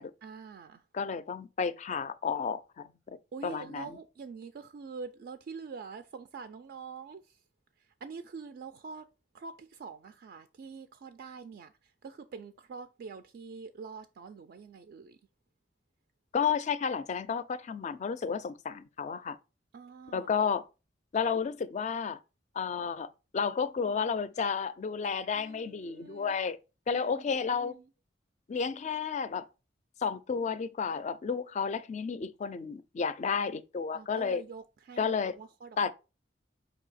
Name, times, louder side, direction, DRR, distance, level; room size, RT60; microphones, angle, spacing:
voice 1, 0.2-0.8 3.3-7.4 8.0-9.0 9.3-11.7 12.0-15.2 19.7-20.4 25.3-26.3 26.9-27.8 33.9-35.9, right 5 dB, 60° right, 0.3 m, -45 dB
voice 2, 0.9-2.9 3.4-4.0 16.3-19.4 20.1-20.7 21.1-22.2 22.6-23.1 23.3-26.6 26.9-27.8 28.5-29.5 30.0-34.4 35.0-35.4 35.8-35.9, left 6 dB, 40° left, 0.4 m, -32 dB
4.4 x 2.8 x 4.0 m
head